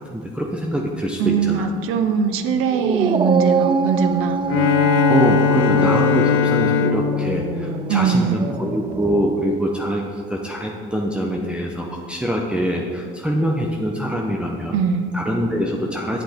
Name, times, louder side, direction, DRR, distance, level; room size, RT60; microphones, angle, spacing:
voice 1, 0.0-1.7 5.1-14.8 15.1-16.2, equal, 5° right, -1 dB, 0.8 m, -24 dB
voice 2, 1.2-4.4 7.9-8.5 14.7-15.1, right 6 dB, 85° right, 8 dB, 0.7 m, -21 dB
Dog, 2.7-9.3, right 5 dB, 25° right, 0.4 m, -24 dB
Bowed string instrument, 4.4-8.8, left 8 dB, 80° left, 0.6 m, -20 dB
8.3 x 7.5 x 4.3 m, 2.2 s
cardioid pair, 95°, 21 cm